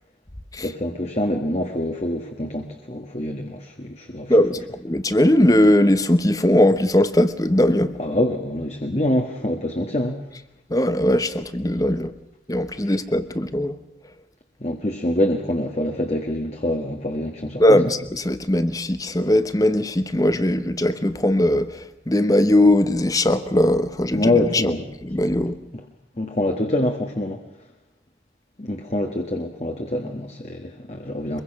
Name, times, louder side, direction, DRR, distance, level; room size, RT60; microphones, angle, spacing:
voice 1, 0.6-4.7 8.0-10.2 12.8-13.0 14.6-18.0 24.1-24.9 25.7-25.8 26.2-27.4 28.6-31.4, left 1 dB, 35° left, 4 dB, 1.5 m, -25 dB
voice 2, 4.3-7.9 10.7-12.1 12.5-13.8 17.6-24.6 25.0-25.6, left 1 dB, 20° left, 12 dB, 1.0 m, -19 dB
23.5 x 22.5 x 6.0 m, 0.87 s
head